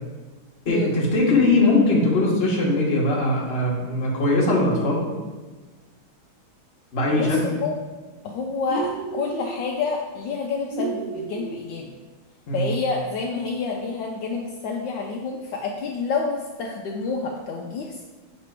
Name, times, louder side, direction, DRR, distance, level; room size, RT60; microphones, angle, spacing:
voice 1, 0.6-5.0 6.9-7.4 12.5-12.7, left 2 dB, 35° left, -3 dB, 1.1 m, -20 dB
voice 2, 7.1-7.8 8.2-11.9 12.5-18.0, left 4 dB, 75° left, 0 dB, 1.1 m, -28 dB
sound 1, 8.6-9.6 10.7-11.6, right 3 dB, 80° right, 1.4 m, -31 dB
6.8 x 3.1 x 4.5 m, 1.3 s
omnidirectional pair, 2.2 m